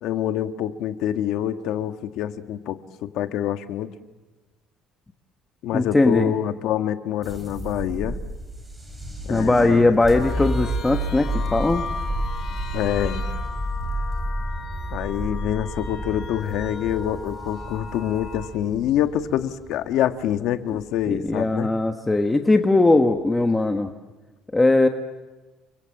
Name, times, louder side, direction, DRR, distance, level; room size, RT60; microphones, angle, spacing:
voice 1, 0.0-3.9 5.6-8.2 9.2-10.0 12.7-13.3 14.9-21.7, left 11 dB, 65° left, 8 dB, 1.6 m, -26 dB
voice 2, 5.7-6.3 9.3-11.8 21.1-23.9 24.5-24.9, left 2 dB, 10° left, 5 dB, 1.1 m, -19 dB
sound 1, 7.2-21.4, right 1 dB, 5° right, 4.7 m, -31 dB
sound 2, 10.2-18.5, left 5 dB, 40° left, 5.3 m, -37 dB
29.0 x 24.5 x 7.8 m, 1.2 s
cardioid pair, 165°, 0 cm